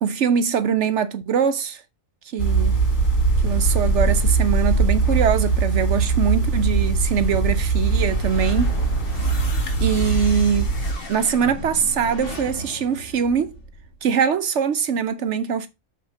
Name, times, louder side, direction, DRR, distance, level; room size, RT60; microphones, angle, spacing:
voice 1, 0.0-1.8 2.3-2.8 3.4-8.8 9.8-10.7 11.1-13.5 14.0-15.7, right 7 dB, 65° right, 0.9 m, -22 dB
sound 1, 2.4-10.9, right 3 dB, 70° left, 3.4 m, -21 dB
sound 2, 7.8-14.0, left 2 dB, 45° left, 1.9 m, -36 dB
5.7 x 4.7 x 6.3 m
omnidirectional pair, 1.4 m